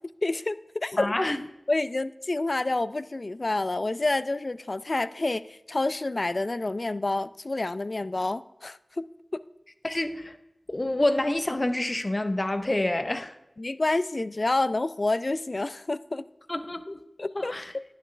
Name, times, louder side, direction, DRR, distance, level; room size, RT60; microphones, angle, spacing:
voice 1, 0.2-1.1 1.7-9.0 13.6-16.3 17.2-17.8, left 2 dB, 60° left, 0.4 m, -28 dB
voice 2, 1.0-1.4 9.8-10.4 10.7-13.3 16.5-17.0 17.3-17.7, left 1 dB, 40° left, 0.9 m, -27 dB
11.5 x 10.5 x 3.3 m
wide cardioid pair, 40°, 0 cm